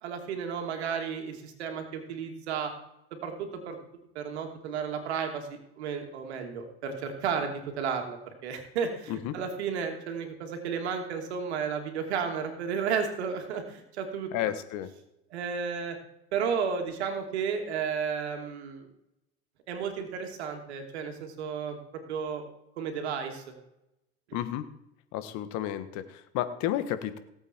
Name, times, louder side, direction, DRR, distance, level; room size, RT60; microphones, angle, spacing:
voice 1, 0.0-2.7 3.1-3.8 4.1-5.5 5.8-8.2 8.4-14.3 15.3-16.0 16.3-18.9 19.7-22.4 22.8-23.4, right 6 dB, 80° right, 4 dB, 2.6 m, -33 dB
voice 2, 9.1-9.4 14.3-14.9 24.3-24.7 25.1-27.2, left 12 dB, 60° left, 12 dB, 1.5 m, -32 dB
18.0 x 8.1 x 4.5 m, 0.86 s
hypercardioid pair, 85°, 32 cm